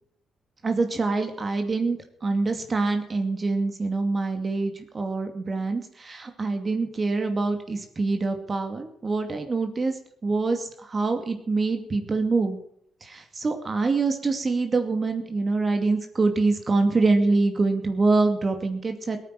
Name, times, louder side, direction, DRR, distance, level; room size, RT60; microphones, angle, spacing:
voice 1, 0.6-12.6 13.0-19.2, right 3 dB, 30° right, 5 dB, 2.4 m, -25 dB
17.5 x 9.7 x 7.7 m, 0.69 s
cardioid pair, 90°, 0 cm